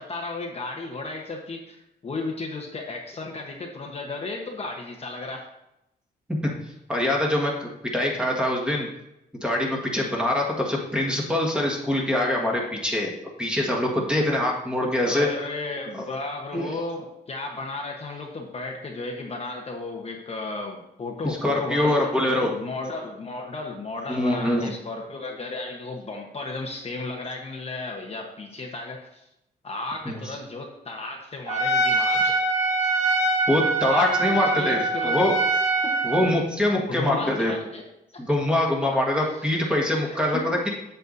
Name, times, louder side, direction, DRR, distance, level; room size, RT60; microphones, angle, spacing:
voice 1, 0.0-5.4 15.0-29.2 29.6-32.3 33.8-35.2 35.8-35.9 36.8-37.8 40.0-40.4, left 3 dB, 35° left, 1 dB, 1.0 m, -34 dB
voice 2, 6.9-8.9 9.4-13.1 13.4-15.3 16.5-16.7 21.2-22.5 24.1-24.7 30.0-30.2 33.5-35.4 36.0-37.5 38.2-40.7, left 1 dB, 5° right, -2 dB, 1.5 m, -24 dB
Trumpet, 31.5-36.4, right 2 dB, 45° right, 1.8 m, -23 dB
8.0 x 8.0 x 2.6 m, 0.86 s
cardioid pair, 130°, 17 cm